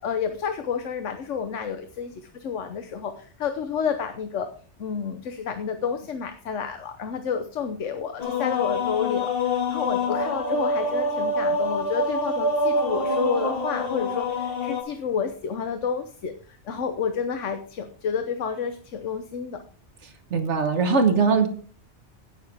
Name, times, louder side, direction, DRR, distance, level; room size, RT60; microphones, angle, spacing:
voice 1, 0.0-4.5 4.8-16.3 16.7-19.6, left 6 dB, 85° left, 8 dB, 1.2 m, -30 dB
sound 1, 8.2-14.8, left 2 dB, 50° left, 1.9 m, -26 dB
voice 2, 20.3-21.5, right 5 dB, 75° right, 7 dB, 1.5 m, -20 dB
16.5 x 6.8 x 3.5 m, 0.44 s
omnidirectional pair, 1.2 m